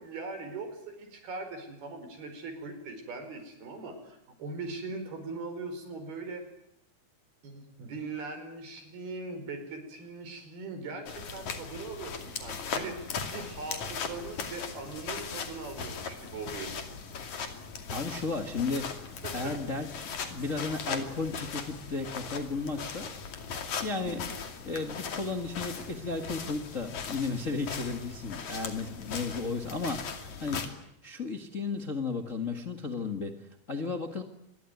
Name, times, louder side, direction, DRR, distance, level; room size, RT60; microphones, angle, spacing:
voice 1, 0.0-6.4 7.4-17.0 19.2-19.5 24.0-24.3, right 3 dB, 90° right, 8 dB, 6.7 m, -40 dB
sound 1, 11.1-30.7, left 5 dB, 55° left, 3.7 m, -39 dB
voice 2, 17.9-19.9 20.2-23.1 23.8-24.2 24.6-30.7 31.0-34.2, left 4 dB, 35° left, 5 dB, 1.2 m, -34 dB
26.5 x 22.5 x 9.5 m, 0.79 s
omnidirectional pair, 4.3 m